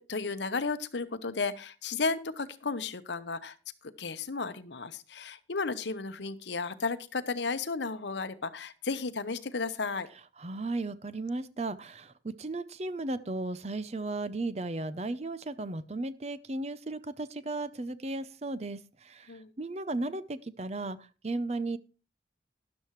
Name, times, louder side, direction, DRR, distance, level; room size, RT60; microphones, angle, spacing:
voice 1, 0.0-3.6 3.8-10.1 19.3-19.5, left 4 dB, 70° left, 13 dB, 0.9 m, -34 dB
voice 2, 10.4-21.8, right 2 dB, 35° right, 15 dB, 0.6 m, -35 dB
12.5 x 11.5 x 3.1 m, 0.32 s
head